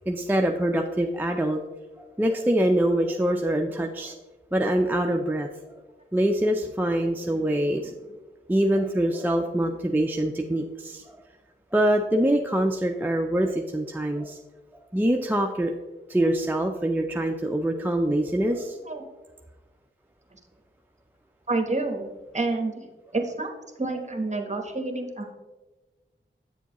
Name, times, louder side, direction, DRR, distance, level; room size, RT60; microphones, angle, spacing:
voice 1, 0.1-1.6 2.0-4.2 4.5-5.5 6.1-7.9 8.5-11.2 11.7-14.4 14.9-15.7 16.1-18.8, right 1 dB, 10° right, 3 dB, 0.5 m, -24 dB
voice 2, 21.5-22.1 22.3-22.9 23.1-23.5 23.8-25.3, right 2 dB, 35° right, 4 dB, 1.1 m, -28 dB
8.1 x 7.0 x 3.0 m, 1.2 s
wide cardioid pair, 45°, 21 cm